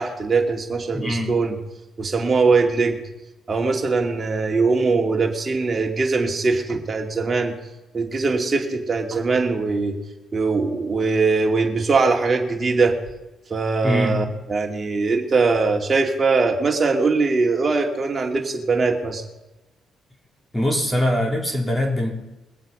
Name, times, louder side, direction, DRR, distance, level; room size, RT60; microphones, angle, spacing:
voice 1, 0.0-1.6 2.0-3.0 3.5-7.6 7.9-10.0 10.3-13.0 13.5-19.2, right 4 dB, 35° right, 2 dB, 2.5 m, -21 dB
voice 2, 0.9-1.3 13.8-14.2 20.5-22.1, left 1 dB, 10° left, 0 dB, 4.2 m, -22 dB
22.0 x 7.9 x 5.5 m, 0.98 s
cardioid pair, 90°, 0 cm